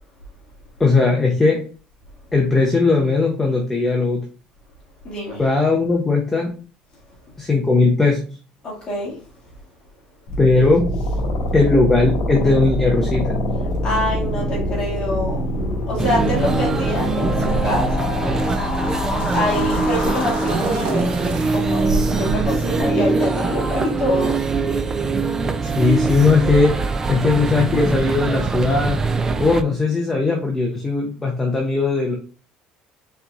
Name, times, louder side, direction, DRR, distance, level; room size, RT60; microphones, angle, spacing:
voice 1, 0.8-1.6 2.3-4.2 5.4-6.5 7.4-8.2 10.4-10.9 11.5-13.4 25.6-26.7 27.1-29.0 29.4-32.2, left 3 dB, 15° left, 0.7 m, -18 dB
voice 2, 5.0-5.4 8.6-9.3 13.8-15.5 15.9-18.1 19.3-24.4, left 1 dB, 35° left, 2.1 m, -25 dB
sound 1, 10.3-21.2, left 1 dB, 75° left, 1.5 m, -25 dB
sound 2, 16.0-29.6, right 4 dB, 20° right, 0.4 m, -22 dB
sound 3, 17.4-22.8, right 3 dB, 75° right, 1.1 m, -30 dB
4.4 x 4.1 x 2.4 m
cardioid pair, 145°, 3 cm